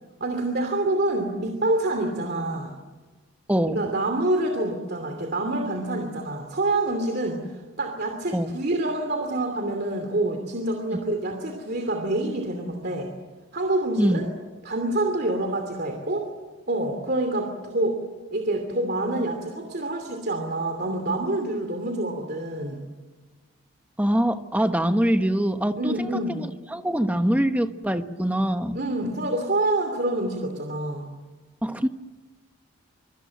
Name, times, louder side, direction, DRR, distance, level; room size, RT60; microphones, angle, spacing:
voice 1, 0.2-2.7 3.7-13.1 13.5-14.3 14.6-16.3 16.7-18.0 18.3-22.8 25.7-26.4 28.7-31.1, right 2 dB, 45° right, 4 dB, 2.8 m, -27 dB
voice 2, 3.5-3.8 8.3-8.5 14.0-14.2 24.0-28.8 31.6-31.9, equal, 5° right, 8 dB, 1.1 m, -24 dB
25.0 x 24.5 x 7.7 m, 1.3 s
head